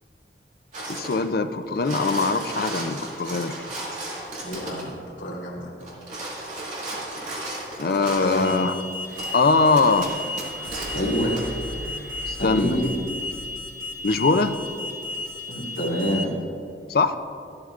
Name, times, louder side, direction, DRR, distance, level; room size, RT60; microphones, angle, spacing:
sound 1, 0.7-1.3 1.6-4.9 5.8-8.6 9.2-9.3 9.8-11.0 11.4-11.5, right 2 dB, 40° right, 2.4 m, -34 dB
voice 1, 0.9-3.5 7.8-8.8 9.3-10.1 12.3-12.8 14.0-14.6 16.9-17.1, left 3 dB, 55° left, 9 dB, 0.5 m, -21 dB
voice 2, 4.4-5.7 8.2-8.5 10.9-11.4 12.4-12.9 15.5-16.4, equal, 85° left, -4 dB, 2.5 m, -27 dB
Alarm, 8.4-16.2, left 2 dB, 15° right, 1.3 m, -34 dB
sound 2, 9.0-15.4, right 1 dB, 65° right, 1.0 m, -41 dB
13.0 x 12.5 x 2.5 m, 2.4 s
head